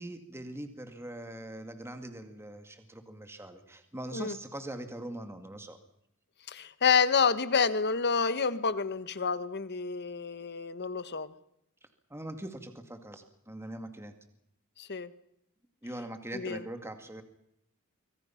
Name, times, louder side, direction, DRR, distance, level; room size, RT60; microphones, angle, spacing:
voice 1, 0.0-5.8 12.1-14.1 15.8-17.2, right 1 dB, 10° right, 7 dB, 2.2 m, -42 dB
voice 2, 6.5-11.3 14.8-15.1 16.3-16.6, left 5 dB, 50° left, 14 dB, 1.3 m, -28 dB
25.0 x 24.5 x 5.9 m, 0.77 s
head